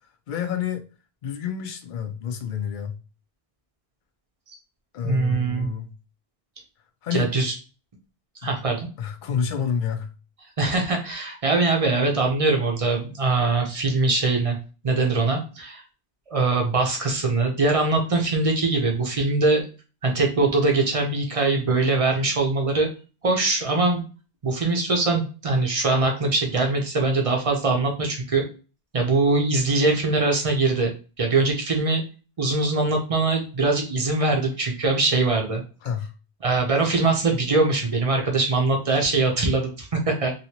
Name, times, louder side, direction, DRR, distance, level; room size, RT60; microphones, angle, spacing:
voice 1, 0.3-0.8 1.2-3.0 4.9-5.9 7.0-7.3 9.0-10.1 35.8-36.1, left 7 dB, 60° left, 7 dB, 0.6 m, -29 dB
voice 2, 5.0-5.7 7.1-7.5 8.4-8.9 10.6-14.6 14.8-15.8 16.3-19.6 20.0-22.9 23.2-24.0 24.4-28.4 28.9-30.9 31.2-32.0 32.4-35.6 36.4-40.3, right 3 dB, 40° right, 2 dB, 0.8 m, -22 dB
3.0 x 2.7 x 2.8 m, 0.33 s
omnidirectional pair, 1.0 m